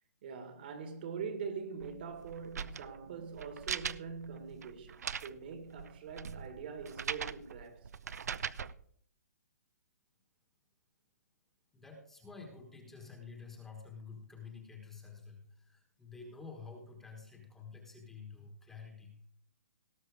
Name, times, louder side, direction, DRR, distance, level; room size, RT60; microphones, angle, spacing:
voice 1, 0.2-7.9, right 6 dB, 35° right, 1.6 m, -43 dB
sound 1, 1.8-8.7, right 7 dB, 70° right, 0.6 m, -41 dB
voice 2, 11.7-19.2, left 5 dB, 5° left, 1.3 m, -50 dB
18.0 x 6.1 x 4.8 m
hypercardioid pair, 170°, 9 cm